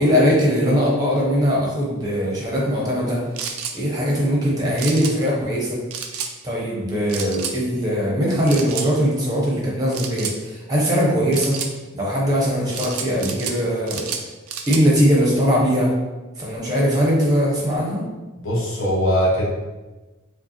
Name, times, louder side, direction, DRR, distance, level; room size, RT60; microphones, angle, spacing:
voice 1, 0.0-3.2 3.7-5.8 6.4-11.6 11.9-14.1 14.7-15.9 16.4-18.0, equal, 20° right, -4 dB, 0.8 m, -20 dB
sound 1, 3.4-3.8 4.8-5.1 5.9-6.3 7.1-7.6 8.5-8.9 9.9-10.4 11.3-11.7 12.7-13.6 13.9-14.8, right 7 dB, 80° right, 0.4 m, -30 dB
voice 2, 18.4-19.5, equal, 65° left, -5 dB, 1.2 m, -20 dB
4.9 x 2.2 x 2.9 m, 1.1 s
head